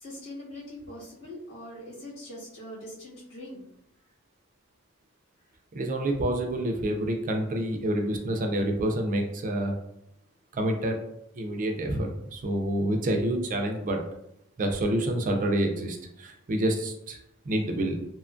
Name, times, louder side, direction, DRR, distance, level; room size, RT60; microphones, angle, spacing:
voice 1, 0.0-3.6, left 1 dB, 75° left, -7 dB, 1.3 m, -42 dB
voice 2, 5.7-9.8 10.5-11.0 11.4-14.0 14.6-17.2 17.5-18.0, right 1 dB, 40° right, 3 dB, 0.4 m, -28 dB
2.8 x 2.2 x 2.4 m, 0.78 s
head